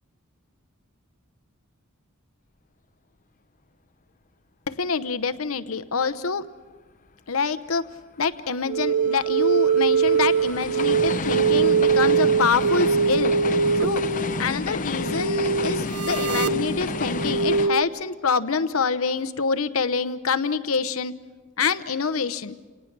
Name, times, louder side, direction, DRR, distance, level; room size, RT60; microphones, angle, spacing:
voice 1, 4.7-6.5 7.3-7.8 8.2-13.3 13.8-14.0 14.4-21.1 21.6-22.5, left 5 dB, 75° left, 12 dB, 0.9 m, -26 dB
sound 1, 8.3-17.7, left 3 dB, 40° left, 0.8 m, -31 dB
sound 2, 8.7-17.8, right 5 dB, 85° right, 0.6 m, -22 dB
29.0 x 18.5 x 6.1 m, 1.3 s
head